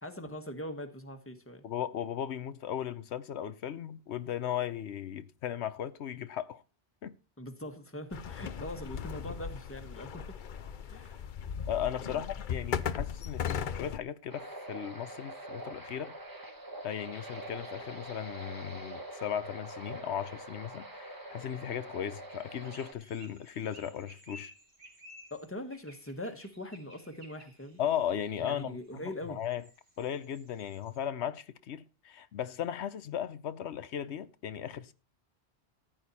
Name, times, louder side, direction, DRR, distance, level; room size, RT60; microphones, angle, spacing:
voice 1, 0.0-1.6 7.4-10.4 10.9-11.2 12.1-12.2 25.3-27.8 28.4-29.4, left 1 dB, 10° left, 1.3 m, -42 dB
voice 2, 1.6-6.6 7.0-7.1 11.7-16.1 16.8-24.5 27.8-29.0 29.3-29.6 30.0-34.9, left 9 dB, 90° left, 1.0 m, -36 dB
sound 1, 8.1-14.0, left 7 dB, 55° left, 0.8 m, -37 dB
sound 2, 14.3-22.9, right 1 dB, 20° right, 1.5 m, -44 dB
sound 3, 22.3-31.0, left 1 dB, 55° right, 2.8 m, -56 dB
14.5 x 8.7 x 4.2 m
omnidirectional pair, 1.1 m